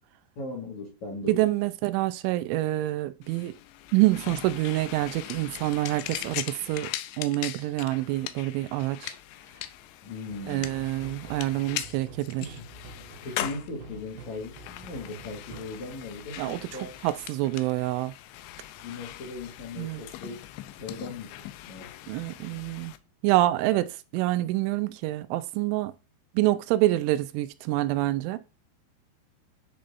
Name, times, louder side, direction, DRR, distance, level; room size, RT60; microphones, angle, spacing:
voice 1, 0.4-1.5 10.0-10.7 12.4-12.6 13.2-16.9 18.8-20.4 20.8-21.4 21.7-21.9, left 3 dB, 55° left, 2.1 m, -38 dB
voice 2, 1.3-3.5 3.9-6.9 7.2-9.2 10.5-12.4 16.4-16.6 17.0-18.1 19.8-20.0 22.1-22.9 23.2-25.9 26.3-28.4, right 16 dB, 90° right, 3.0 m, -26 dB
sound 1, 3.2-23.0, left 14 dB, 80° left, 2.7 m, -40 dB
sound 2, 10.3-17.5, right 3 dB, 70° right, 3.6 m, -48 dB
10.0 x 5.4 x 2.6 m
omnidirectional pair, 5.4 m